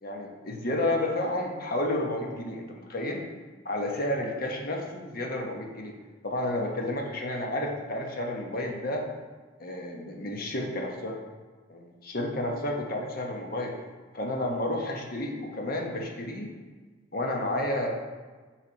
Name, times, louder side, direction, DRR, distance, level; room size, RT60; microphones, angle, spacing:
voice 1, 0.0-3.2 3.6-5.9 6.2-9.0 9.6-11.2 11.7-13.7 14.1-16.5 17.1-17.9, left 1 dB, 50° left, 1 dB, 1.1 m, -31 dB
6.1 x 5.0 x 4.1 m, 1.4 s
head